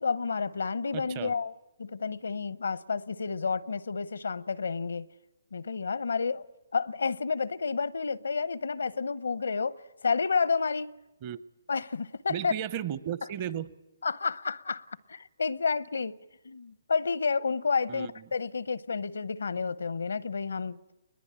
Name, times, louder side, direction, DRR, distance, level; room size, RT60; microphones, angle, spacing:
voice 1, 0.0-1.5 1.8-5.1 5.5-6.5 6.7-10.9 11.7-12.5 14.0-16.1 16.4-20.8, left 5 dB, 80° left, 0.7 m, -30 dB
voice 2, 0.9-1.3 11.2-11.4 12.3-13.7 17.9-18.1, right 10 dB, 35° right, 0.8 m, -34 dB
22.5 x 20.5 x 8.8 m
hypercardioid pair, 145°, 0 cm